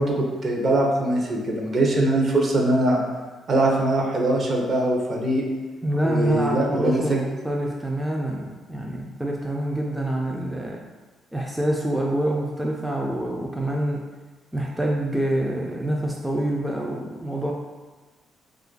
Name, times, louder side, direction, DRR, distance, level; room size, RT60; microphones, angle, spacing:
voice 1, 0.0-3.0 3.5-5.4 6.0-7.2, right 1 dB, 50° right, -1 dB, 0.7 m, -22 dB
voice 2, 5.8-10.8 11.3-14.0 14.5-17.5, right 1 dB, 5° right, -2 dB, 0.4 m, -26 dB
2.6 x 2.4 x 3.7 m, 1.3 s
cardioid pair, 90°, 0 cm